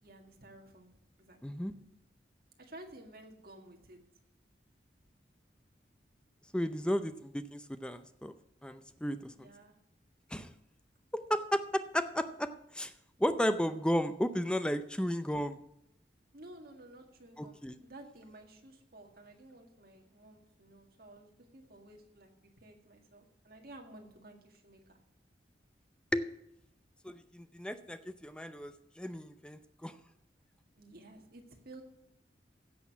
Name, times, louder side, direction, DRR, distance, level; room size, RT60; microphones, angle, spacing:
voice 1, 0.0-1.6 2.6-4.0 9.3-9.8 16.3-22.3 22.6-25.0 30.8-31.8, right 1 dB, 55° right, 2 dB, 1.9 m, -53 dB
voice 2, 1.4-1.7 6.5-8.3 8.6-9.5 10.3-10.5 11.3-12.5 12.7-12.9 13.2-15.6 17.4-17.8 26.1-26.3 27.0-29.9, equal, 5° left, 10 dB, 0.5 m, -33 dB
16.0 x 6.4 x 5.9 m, 0.80 s
head